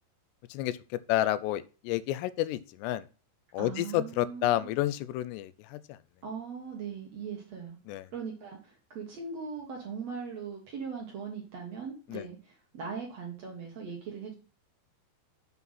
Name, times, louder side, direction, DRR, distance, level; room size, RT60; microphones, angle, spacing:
voice 1, 1.1-3.0 3.5-6.0 7.9-8.1 12.1-12.2, left 14 dB, 90° left, 16 dB, 2.8 m, -30 dB
voice 2, 3.6-4.7 6.2-7.8 8.1-14.3, right 6 dB, 55° right, 0 dB, 2.0 m, -40 dB
7.6 x 5.8 x 5.7 m, 0.34 s
omnidirectional pair, 4.8 m